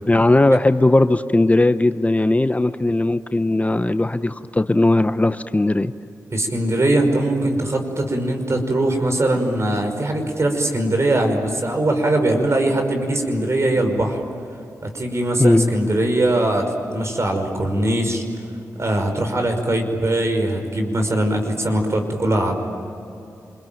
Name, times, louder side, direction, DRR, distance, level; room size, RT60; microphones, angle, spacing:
voice 1, 0.1-5.9 15.4-15.7, left 2 dB, 20° left, 11 dB, 0.8 m, -18 dB
voice 2, 6.3-14.2 14.8-18.2 18.8-22.5, right 1 dB, 50° right, 4 dB, 5.5 m, -21 dB
27.5 x 22.5 x 9.2 m, 2.6 s
cardioid pair, 45°, 6 cm